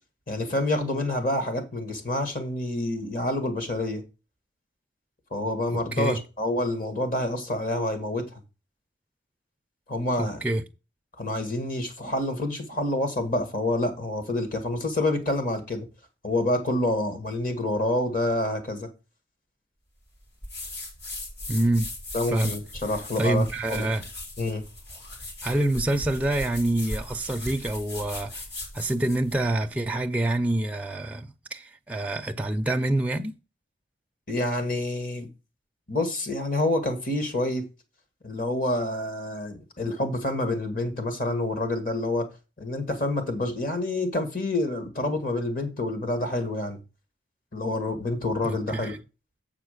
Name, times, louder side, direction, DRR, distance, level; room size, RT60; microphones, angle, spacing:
voice 1, 0.3-4.0 5.3-8.2 9.9-10.4 11.2-15.9 16.2-18.9 22.1-23.9 24.4-24.6 34.3-35.3 35.9-37.6 38.2-42.3 42.6-46.8 47.5-48.9, left 1 dB, 45° left, 1.6 m, -27 dB
voice 2, 5.7-6.2 10.2-10.6 21.5-21.9 22.3-22.6 23.2-24.1 25.4-28.4 28.7-33.3 48.4-49.0, right 1 dB, 10° right, 0.4 m, -26 dB
sound 1, 20.4-29.5, left 1 dB, 65° left, 3.8 m, -38 dB
7.5 x 4.8 x 6.5 m
head